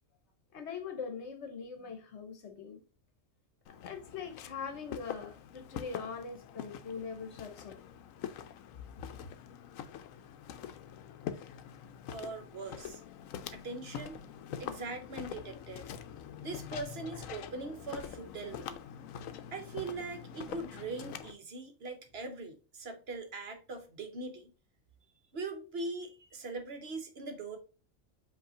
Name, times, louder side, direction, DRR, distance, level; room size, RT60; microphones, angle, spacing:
voice 1, 0.5-2.8 3.7-7.8 9.0-9.2, left 5 dB, 60° left, 1.1 m, -42 dB
Walk footsteps, 3.7-21.4, left 8 dB, 90° left, 1.0 m, -45 dB
voice 2, 12.1-13.0 13.5-14.2 14.6-15.9 16.4-18.8 19.5-24.5 25.3-27.6, right 3 dB, 55° right, 1.0 m, -41 dB
5.3 x 2.7 x 3.7 m
omnidirectional pair, 1.3 m